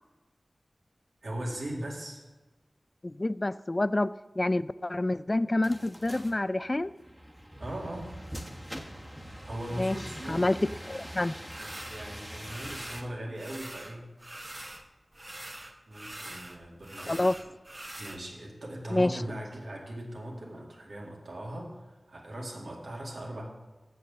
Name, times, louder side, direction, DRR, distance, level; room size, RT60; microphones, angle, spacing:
voice 1, 1.2-2.2 7.6-8.1 9.5-10.9 11.6-14.1 15.9-17.3 18.0-23.4, right 1 dB, 85° right, -2 dB, 2.2 m, -39 dB
voice 2, 3.0-6.9 9.7-10.0 10.3-11.4 17.1-17.3 18.9-19.2, left 2 dB, 35° left, 16 dB, 0.3 m, -28 dB
sound 1, 5.6-13.0, equal, 5° right, 1.3 m, -43 dB
sound 2, 11.5-12.1 12.4-13.1 13.3-14.8 15.1-18.2, right 1 dB, 30° right, 1.1 m, -43 dB
7.6 x 7.1 x 6.9 m, 1.2 s
wide cardioid pair, 55°, 0 cm